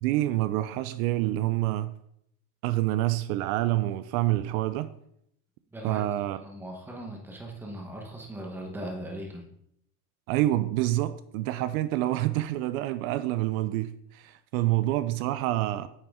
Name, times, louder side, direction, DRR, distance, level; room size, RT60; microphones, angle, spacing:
voice 1, 0.0-1.9 2.6-4.9 5.8-6.4 10.3-15.9, right 15 dB, 65° right, 0.5 m, -27 dB
voice 2, 5.7-9.5, right 1 dB, 5° right, 1.0 m, -39 dB
9.3 x 5.7 x 3.6 m
cardioid pair, 170°, 46 cm